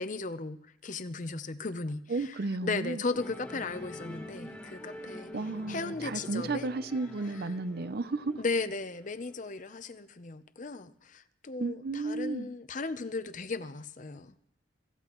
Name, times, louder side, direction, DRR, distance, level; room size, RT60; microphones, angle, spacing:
voice 1, 0.0-2.3 2.6-5.3 5.7-6.7 7.3-7.4 8.4-14.3, left 3 dB, 40° left, 0.7 m, -36 dB
voice 2, 2.1-3.0 5.3-8.4 11.6-12.5, right 3 dB, 50° right, 0.6 m, -33 dB
Musical instrument, 3.1-9.7, left 1 dB, 10° left, 1.8 m, -46 dB
25.0 x 14.5 x 3.1 m
head